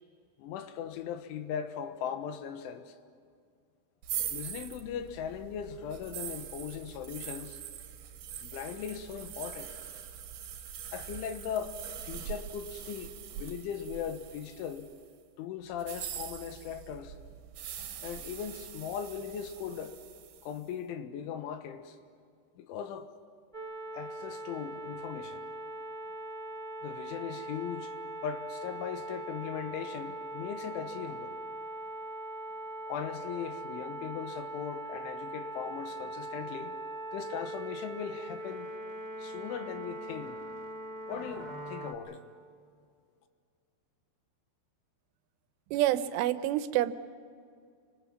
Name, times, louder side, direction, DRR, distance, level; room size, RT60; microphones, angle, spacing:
voice 1, 0.4-3.0 4.3-7.6 8.4-9.7 10.9-14.9 15.4-17.2 18.0-20.0 20.4-22.0 22.6-23.1 23.9-25.4 26.8-27.9 28.2-31.4 32.9-36.8 37.1-38.7 39.2-40.4 41.1-42.2, left 8 dB, 80° left, 3.7 m, -39 dB
sound 1, 4.0-15.0 15.7-20.6, right 9 dB, 65° right, 2.9 m, -43 dB
sound 2, 23.5-41.9, right 1 dB, 20° right, 1.1 m, -41 dB
voice 2, 45.7-46.9, right 13 dB, 85° right, 3.4 m, -27 dB
29.5 x 24.5 x 6.0 m
omnidirectional pair, 5.5 m